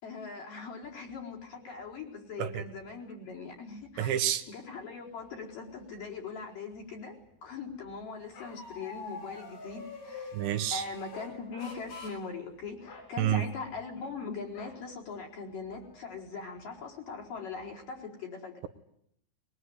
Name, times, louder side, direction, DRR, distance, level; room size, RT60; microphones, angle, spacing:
voice 1, 0.0-7.2 7.4-10.3 10.7-18.6, left 4 dB, 50° left, -1 dB, 6.0 m, -41 dB
sound 1, 0.8-18.0, left 1 dB, 65° left, 10.0 m, -55 dB
voice 2, 4.0-4.4 10.3-10.8 13.2-13.4, right 12 dB, 80° right, 10 dB, 3.4 m, -28 dB
Bark, 8.3-10.5 11.1-11.9 12.2-12.4 12.8-13.1 14.5-14.8 15.4-15.5 15.8-16.2, left 4 dB, 85° left, 8.1 m, -46 dB
22.5 x 22.5 x 9.8 m, 0.75 s
omnidirectional pair, 5.2 m